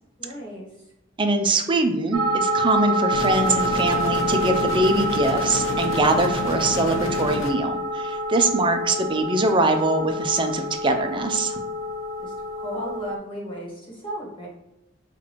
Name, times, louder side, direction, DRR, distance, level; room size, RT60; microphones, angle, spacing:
voice 1, 0.2-0.7 12.2-14.5, right 1 dB, 25° left, -4 dB, 1.3 m, -35 dB
voice 2, 1.2-11.6, right 2 dB, 25° right, 6 dB, 0.4 m, -23 dB
sound 1, 2.1-13.2, right 1 dB, 80° right, 0.5 m, -27 dB
sound 2, 3.1-7.5, left 2 dB, 90° left, 0.7 m, -30 dB
5.8 x 2.5 x 3.0 m, 0.88 s
head